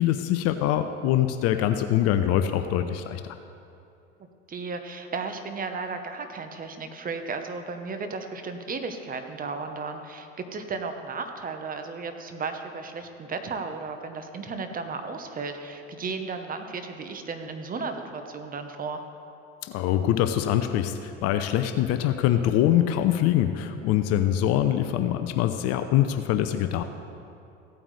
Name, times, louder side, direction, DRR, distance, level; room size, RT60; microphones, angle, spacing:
voice 1, 0.0-3.4 19.6-26.8, left 11 dB, 45° left, 9 dB, 0.6 m, -24 dB
voice 2, 4.5-19.0, right 4 dB, 25° right, 6 dB, 1.1 m, -34 dB
16.0 x 8.8 x 3.3 m, 2.7 s
hypercardioid pair, 80°, 35 cm